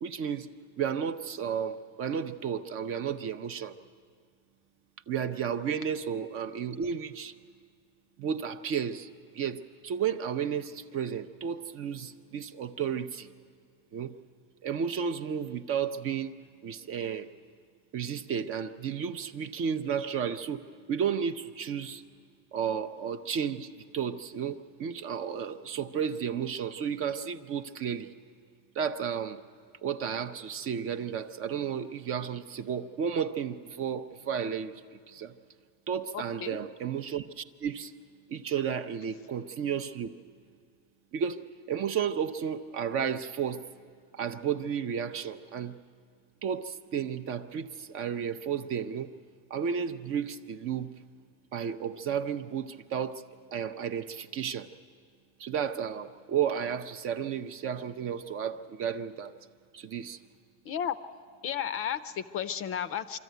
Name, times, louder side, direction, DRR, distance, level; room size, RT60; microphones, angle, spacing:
voice 1, 0.0-0.5 0.8-3.8 5.1-7.3 8.2-9.1 9.3-13.3 13.9-14.2 14.6-17.3 17.9-22.0 22.5-28.1 28.7-29.4 29.8-35.3 35.9-37.9 38.3-40.2 41.1-43.7 44.1-45.8 46.4-49.1 49.5-51.0 51.5-53.2 53.5-54.7 55.4-59.3 59.7-60.2, right 7 dB, 35° right, 9 dB, 0.5 m, -33 dB
voice 2, 36.1-36.6 60.6-61.0 61.4-63.2, left 9 dB, 35° left, 13 dB, 0.5 m, -33 dB
24.5 x 13.5 x 9.2 m, 2.1 s
cardioid pair, 150°, 43 cm